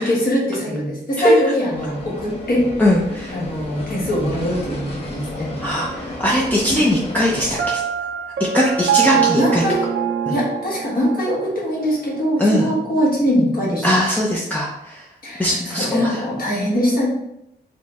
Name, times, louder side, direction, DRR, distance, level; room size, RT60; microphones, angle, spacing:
voice 1, 0.0-2.7 3.3-5.5 6.7-7.2 9.1-9.9 10.3-13.9 15.2-17.1, equal, 55° left, -5 dB, 1.3 m, -22 dB
sound 1, 1.7-7.6, left 1 dB, 30° left, 0.8 m, -33 dB
voice 2, 2.8-3.4 5.6-7.8 8.4-9.6 10.3-10.4 12.4-12.7 13.8-15.0 15.4-16.2, equal, 10° left, -5 dB, 0.4 m, -19 dB
Piano, 7.6-11.4, right 8 dB, 90° right, 0.5 m, -22 dB
4.3 x 2.1 x 3.4 m, 0.82 s
wide cardioid pair, 165°, 18 cm